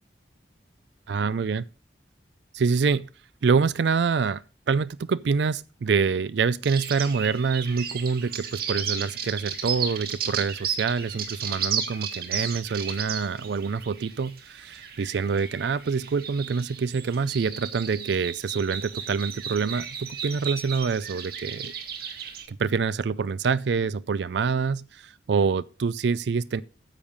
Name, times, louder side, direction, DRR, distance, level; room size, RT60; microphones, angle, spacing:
voice 1, 1.1-1.6 2.5-3.1 3.4-4.4 4.7-21.7 22.5-26.6, right 5 dB, 70° right, 0.4 m, -26 dB
sound 1, 6.6-22.5, right 7 dB, 55° right, 1.8 m, -34 dB
9.9 x 7.2 x 5.2 m
head